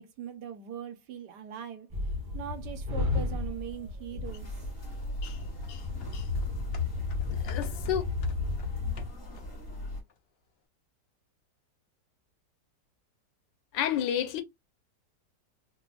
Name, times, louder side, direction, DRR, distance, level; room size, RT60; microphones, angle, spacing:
voice 1, 0.0-1.9 2.3-4.5, right 8 dB, 75° right, 1.3 m, -40 dB
sound 1, 1.9-9.1, left 4 dB, 30° right, 0.9 m, -33 dB
sound 2, 4.2-10.0, left 1 dB, 35° left, 1.8 m, -40 dB
sound 3, 5.3-9.7 10.1-10.2, left 6 dB, 60° left, 0.6 m, -51 dB
voice 2, 7.3-8.0 13.7-14.4, left 9 dB, 90° left, 1.3 m, -31 dB
4.1 x 2.5 x 2.2 m
omnidirectional pair, 1.9 m